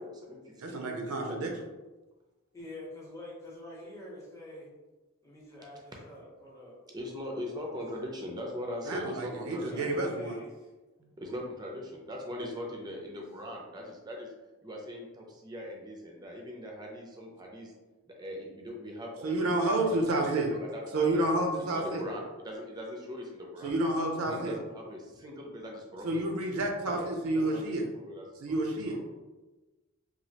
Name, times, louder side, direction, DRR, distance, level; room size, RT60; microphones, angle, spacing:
voice 1, 0.0-0.8 1.1-1.4 6.9-10.1 11.0-14.3 14.6-17.7 18.1-20.3 20.6-23.7 24.3-26.2 26.9-27.1 27.3-28.6 28.8-29.0, equal, 20° right, 0 dB, 0.4 m, -41 dB
voice 2, 0.6-1.5 8.9-10.4 19.2-20.6 20.9-22.0 23.6-24.5 26.0-27.8 28.4-29.0, right 2 dB, 80° right, 3 dB, 0.5 m, -29 dB
voice 3, 2.5-4.7 5.2-6.8 9.5-10.7 12.6-13.2, left 1 dB, 15° left, -5 dB, 0.7 m, -47 dB
3.0 x 2.4 x 2.8 m, 1.2 s
head